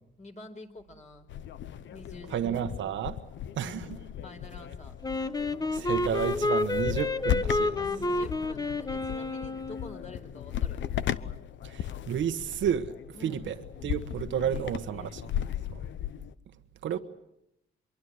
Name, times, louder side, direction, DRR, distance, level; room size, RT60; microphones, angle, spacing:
voice 1, 0.2-1.3 1.9-2.7 3.6-5.0 7.8-10.9 13.1-13.5 14.4-15.6 16.9-17.0, left 2 dB, 35° left, 4.9 m, -48 dB
sound 1, 1.3-16.3, left 10 dB, 70° left, 1.0 m, -36 dB
voice 2, 2.3-3.2 3.6-3.9 5.7-7.8 11.6-12.9 13.2-13.6 13.8-15.2 15.7-15.8 16.8-17.0, right 9 dB, 70° right, 1.4 m, -31 dB
Wind instrument woodwind instrument, 5.0-10.1, left 2 dB, 20° left, 1.1 m, -30 dB
25.5 x 23.0 x 8.1 m
cardioid pair, 90°, 20 cm